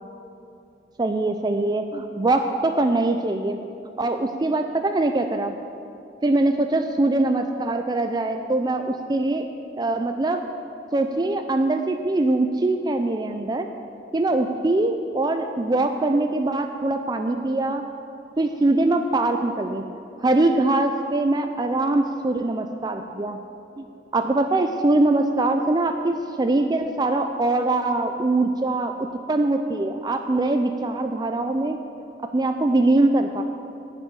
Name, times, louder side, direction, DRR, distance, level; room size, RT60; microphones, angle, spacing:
voice 1, 1.0-3.6 4.0-5.5 6.2-9.5 9.8-10.4 10.9-13.7 14.1-17.9 18.4-19.8 20.2-23.4 23.8-23.9 24.1-31.8 32.2-33.4, right 2 dB, 25° right, 6 dB, 0.4 m, -22 dB
11.0 x 6.2 x 8.9 m, 2.6 s
head